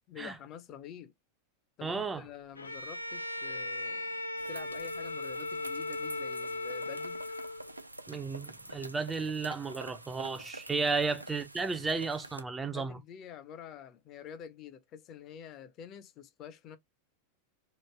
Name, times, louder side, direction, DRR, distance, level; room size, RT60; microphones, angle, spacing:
voice 1, 0.1-1.1 1.8-4.2 4.5-7.2 10.7-11.0 12.6-16.8, left 8 dB, 35° left, 0.6 m, -48 dB
voice 2, 1.8-2.2 8.1-13.0, right 4 dB, 15° right, 0.4 m, -33 dB
Bowed string instrument, 2.6-7.8, left 2 dB, 80° left, 0.4 m, -37 dB
sound 1, 4.4-12.4, right 1 dB, 85° right, 0.3 m, -47 dB
3.0 x 2.5 x 3.3 m
figure-of-eight pair, 90°, 0 cm